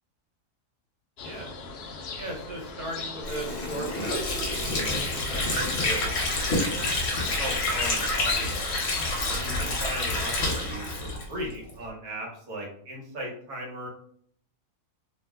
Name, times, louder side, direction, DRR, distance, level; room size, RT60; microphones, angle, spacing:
sound 1, 1.2-9.8, left 5 dB, 80° left, 0.5 m, -37 dB
voice 1, 2.2-8.5 9.2-13.9, right 1 dB, 75° right, -2 dB, 1.4 m, -37 dB
Water / Sink (filling or washing), 3.2-11.8, left 2 dB, 50° left, 0.9 m, -28 dB
2.9 x 2.1 x 3.4 m, 0.62 s
omnidirectional pair, 1.6 m